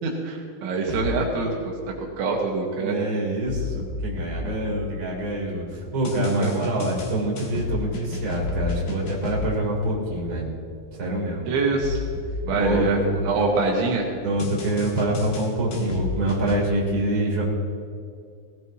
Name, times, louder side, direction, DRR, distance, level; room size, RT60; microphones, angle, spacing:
voice 1, 0.0-1.5 2.2-3.0 6.4-6.5 11.5-12.0 12.4-14.1, right 4 dB, 80° right, -1 dB, 4.0 m, -24 dB
sound 1, 0.9-1.4 3.5-5.3 6.1-9.8 11.8-13.7 14.4-16.6, left 4 dB, 55° left, 3.4 m, -32 dB
voice 2, 2.8-5.6 5.9-10.5 11.0-11.5 12.6-13.1 14.2-17.4, right 1 dB, 30° right, -4 dB, 3.7 m, -25 dB
19.0 x 18.5 x 3.0 m, 2.3 s
omnidirectional pair, 5.4 m